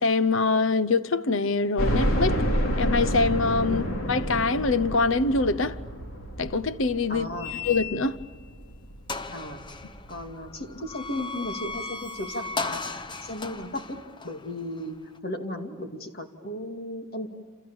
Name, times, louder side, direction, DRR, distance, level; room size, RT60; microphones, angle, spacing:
voice 1, 0.0-2.4 2.8-3.8 4.1-5.8 6.4-7.3 7.6-8.2, left 3 dB, 70° left, 0.8 m, -24 dB
sound 1, 1.8-10.7 11.2-11.3 11.6-11.7 12.9-13.0 13.3-13.4, equal, 85° left, 3.0 m, -29 dB
voice 2, 7.1-7.6 9.3-9.6 10.1-14.0 14.2-15.0 15.2-17.3, left 1 dB, 45° left, 2.4 m, -35 dB
sound 2, 7.4-8.3 8.7-8.8 9.1-15.2, left 4 dB, 20° left, 1.0 m, -36 dB
28.5 x 28.0 x 7.2 m
head